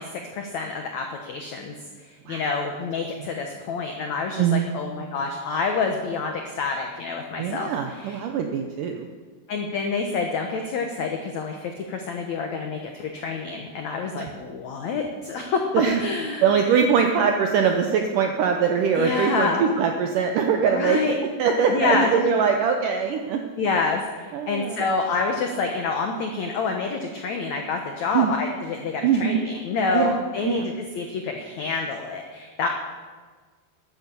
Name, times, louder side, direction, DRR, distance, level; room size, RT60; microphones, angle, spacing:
voice 1, 0.0-1.7 2.0-8.2 9.5-15.6 16.0-16.4 19.0-19.6 20.7-21.1 21.7-22.1 23.6-32.7, left 4 dB, 85° left, 3 dB, 1.6 m, -27 dB
voice 2, 7.4-9.1 14.1-14.3 15.7-16.0 16.4-23.4 24.3-24.8 28.1-28.3 29.0-29.4 29.9-30.7, right 6 dB, 80° right, 4 dB, 1.9 m, -22 dB
13.0 x 10.5 x 7.0 m, 1.4 s
omnidirectional pair, 4.9 m